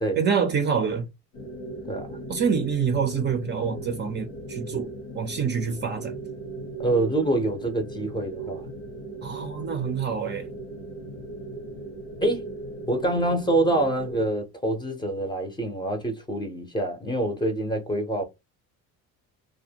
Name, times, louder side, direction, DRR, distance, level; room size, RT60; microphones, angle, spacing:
voice 1, 0.2-1.1 2.3-6.2 9.2-10.5, right 6 dB, 35° right, 0.5 m, -26 dB
sound 1, 1.3-14.3, right 2 dB, 85° left, 1.0 m, -38 dB
voice 2, 1.9-2.2 6.8-8.7 12.2-12.5 12.9-18.2, right 1 dB, 15° left, 0.6 m, -26 dB
2.5 x 2.2 x 2.7 m
cardioid pair, 140°, 33 cm